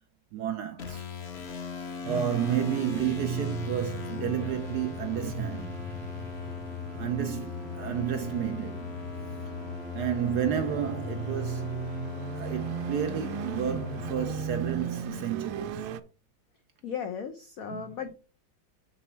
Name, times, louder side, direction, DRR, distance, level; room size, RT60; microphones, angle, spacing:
voice 1, 0.3-1.1 2.1-5.8 7.0-8.9 9.9-11.8 12.3-15.9 17.7-18.0, right 9 dB, 70° right, 1.0 m, -31 dB
sound 1, 0.8-14.9, left 6 dB, 45° left, 0.9 m, -39 dB
sound 2, 2.0-16.0, right 6 dB, 90° right, 1.5 m, -37 dB
voice 2, 16.8-18.1, left 7 dB, 75° left, 0.7 m, -36 dB
7.9 x 4.1 x 4.4 m
omnidirectional pair, 2.3 m